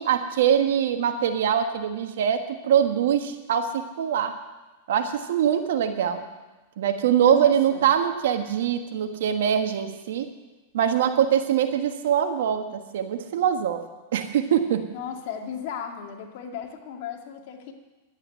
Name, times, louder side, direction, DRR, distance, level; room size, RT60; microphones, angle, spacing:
voice 1, 0.0-4.3 4.9-6.2 6.8-10.3 10.7-13.8 14.1-14.8, right 9 dB, 75° right, 7 dB, 1.5 m, -23 dB
voice 2, 7.2-7.9 14.9-17.7, left 8 dB, 60° left, 3 dB, 2.2 m, -36 dB
11.5 x 9.1 x 9.1 m, 1.1 s
hypercardioid pair, 130°, 0 cm